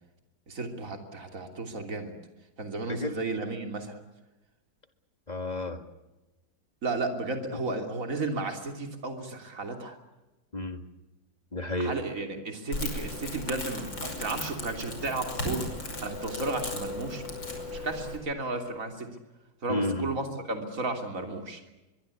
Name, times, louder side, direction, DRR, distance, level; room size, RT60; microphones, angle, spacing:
voice 1, 0.5-2.1 2.6-4.0 6.8-10.0 11.8-15.7 16.0-17.4 17.7-19.1 19.6-21.6, right 3 dB, 45° right, 5 dB, 3.4 m, -33 dB
voice 2, 5.3-5.9 10.5-10.8 11.5-12.0 19.7-20.1, left 2 dB, 25° left, 8 dB, 1.9 m, -31 dB
Crackle, 12.7-18.2, left 2 dB, 90° left, 6.3 m, -36 dB
23.5 x 23.0 x 8.4 m, 1.0 s
omnidirectional pair, 2.0 m